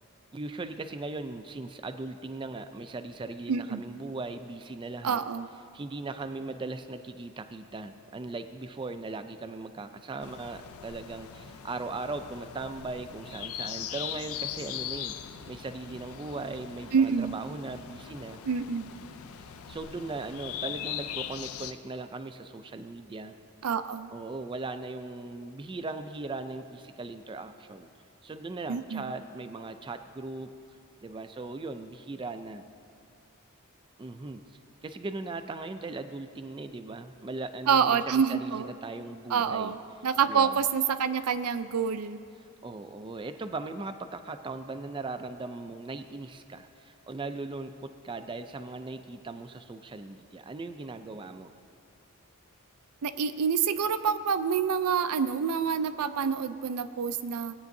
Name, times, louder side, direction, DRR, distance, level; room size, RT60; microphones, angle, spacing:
voice 1, 0.3-5.2 5.7-18.4 19.7-23.4 24.1-27.9 28.2-30.5 31.0-32.6 34.0-34.4 34.8-39.8 40.3-40.6 42.6-51.5, right 3 dB, 20° right, 8 dB, 0.3 m, -38 dB
voice 2, 3.5-3.8 5.0-5.5 16.9-17.4 18.4-18.9 23.6-24.1 28.7-29.1 37.7-38.7 39.3-39.8 40.0-42.2 53.0-57.5, right 6 dB, 85° right, 11 dB, 0.4 m, -27 dB
sound 1, 10.2-21.7, left 10 dB, 70° left, 0.4 m, -40 dB
18.5 x 9.0 x 2.7 m, 2.5 s
head